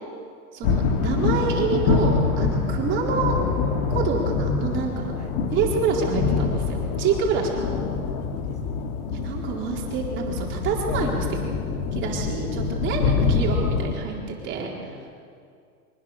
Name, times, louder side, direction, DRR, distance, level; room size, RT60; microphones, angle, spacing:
voice 1, 0.5-3.4 3.9-5.1 5.5-7.7 9.1-11.3 11.9-14.2 14.4-14.7, right 5 dB, 25° right, -2 dB, 4.2 m, -27 dB
sound 1, 0.6-13.9, left 5 dB, 35° left, 2.0 m, -25 dB
voice 2, 7.5-8.0 8.3-9.1 12.3-12.6 13.6-13.9 14.5-15.1, left 5 dB, 15° left, 2 dB, 1.1 m, -48 dB
24.0 x 21.0 x 6.8 m, 2.3 s
supercardioid pair, 160°, 47 cm